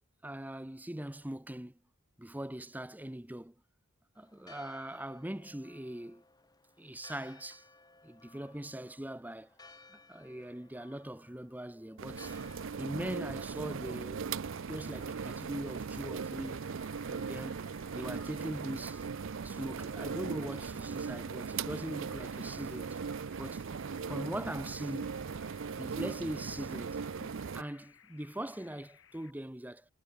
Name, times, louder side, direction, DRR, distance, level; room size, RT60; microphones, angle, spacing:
voice 1, 0.2-1.7 2.2-3.5 4.2-6.2 6.8-7.6 8.0-9.5 9.9-12.4 12.7-14.3 14.7-16.6 17.1-17.6 17.9-19.0 19.4-23.0 23.4-23.6 24.1-25.2 25.8-29.8, right 1 dB, 10° right, 0.7 m, -41 dB
Church bell, 4.2-14.4, left 3 dB, 20° left, 5.2 m, -59 dB
sound 1, 12.0-27.6, right 5 dB, 65° right, 0.5 m, -39 dB
sound 2, 14.3-29.3, left 8 dB, 65° left, 2.6 m, -61 dB
head